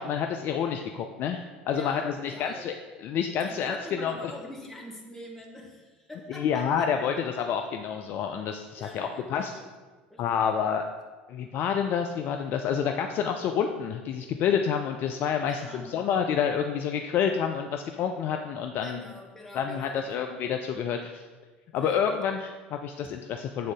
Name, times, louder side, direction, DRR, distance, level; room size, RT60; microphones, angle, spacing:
voice 1, 0.0-2.7 3.0-4.3 6.3-9.5 10.2-10.8 11.3-19.0 19.5-21.3 21.7-23.7, left 7 dB, 40° left, 5 dB, 0.3 m, -28 dB
voice 2, 1.7-2.7 3.4-7.1 8.8-9.7 10.1-10.5 15.5-15.9 18.8-20.2 21.8-22.0, left 1 dB, 5° left, -2 dB, 1.2 m, -44 dB
7.7 x 3.7 x 3.6 m, 1.3 s
figure-of-eight pair, 65°, 5 cm